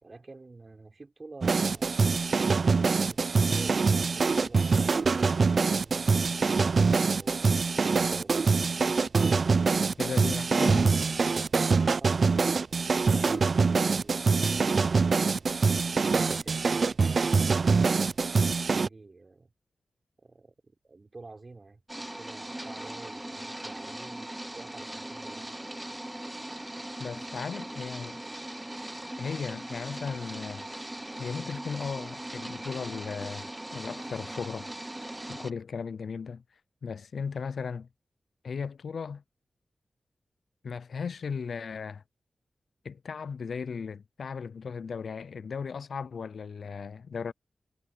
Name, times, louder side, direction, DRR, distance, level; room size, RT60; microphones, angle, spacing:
voice 1, 0.0-2.7 3.1-8.4 18.7-19.5 20.2-21.8 22.2-25.6, right 3 dB, 45° right, 3.8 m, -50 dB
sound 1, 1.4-18.9, right 4 dB, 60° right, 0.4 m, -24 dB
voice 2, 10.0-11.0 13.2-13.4 27.0-28.2 29.2-30.7 31.2-34.7 35.3-36.4 36.8-37.9 38.4-39.2 40.6-42.0 42.8-47.3, left 6 dB, 75° left, 0.4 m, -36 dB
sound 2, 21.9-35.5, right 1 dB, 15° right, 1.0 m, -39 dB
cardioid pair, 50°, 0 cm